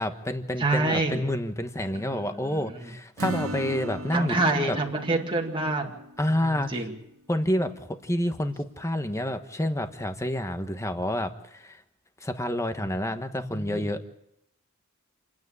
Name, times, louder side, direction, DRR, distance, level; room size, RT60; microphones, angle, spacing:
voice 1, 0.0-4.8 6.2-6.9 7.3-11.8 12.2-14.0, left 1 dB, 15° left, 8 dB, 1.3 m, -29 dB
voice 2, 0.6-1.2 2.2-2.6 4.1-5.9 6.3-6.9 13.4-13.9, right 2 dB, 25° right, 1 dB, 2.0 m, -27 dB
Acoustic guitar / Strum, 3.2-7.1, right 2 dB, 70° right, 1.9 m, -37 dB
28.0 x 9.5 x 9.9 m, 0.81 s
head